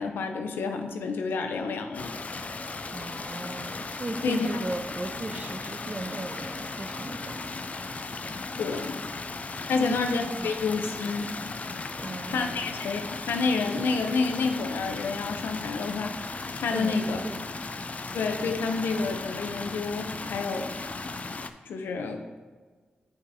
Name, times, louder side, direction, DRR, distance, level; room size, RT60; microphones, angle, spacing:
voice 1, 0.0-2.1 4.2-4.5 8.6-9.0 9.7-11.3 12.3-16.1 16.5-17.2 18.1-20.7 21.7-22.4, left 4 dB, 90° left, 5 dB, 0.6 m, -29 dB
sound 1, 1.9-21.5, left 3 dB, 40° left, 0.4 m, -36 dB
voice 2, 2.9-7.4 8.6-8.8 9.8-10.0 10.3-10.6 12.0-12.6 16.7-17.5, right 2 dB, 35° right, 6 dB, 0.7 m, -36 dB
9.2 x 4.9 x 2.7 m, 1.5 s
cardioid pair, 50°, 4 cm